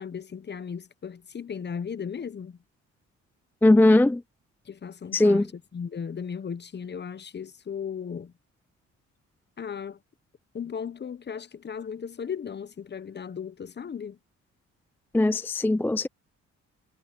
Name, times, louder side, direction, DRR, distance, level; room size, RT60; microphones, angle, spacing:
voice 1, 0.0-2.6 4.6-8.3 9.6-10.0 10.5-14.2, left 7 dB, 35° left, 1.0 m, -36 dB
voice 2, 3.6-4.2 5.1-5.5 15.1-16.1, left 2 dB, 5° left, 0.4 m, -19 dB
cardioid pair, 90°, 30 cm